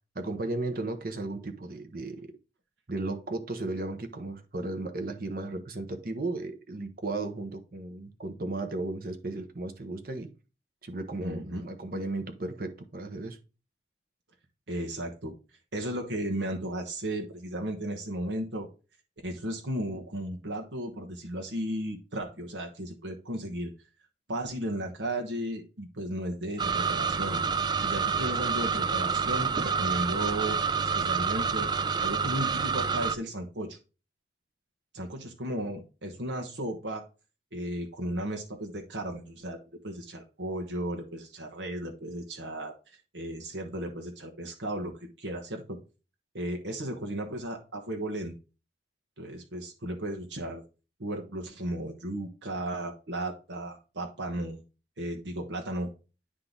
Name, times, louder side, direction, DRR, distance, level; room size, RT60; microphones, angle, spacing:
voice 1, 0.1-2.3 2.9-10.3 10.8-13.4, right 2 dB, 55° right, 1.0 m, -35 dB
voice 2, 11.2-11.6 14.7-15.3 15.7-18.7 19.2-23.7 24.3-27.4 27.8-33.8 34.9-37.0 37.5-39.6 39.8-45.8 46.3-48.3 49.2-50.6 51.0-54.6 55.0-55.9, right 1 dB, 85° right, 1.2 m, -35 dB
sound 1, 26.6-33.2, right 5 dB, 25° right, 0.3 m, -28 dB
9.7 x 3.8 x 3.8 m
head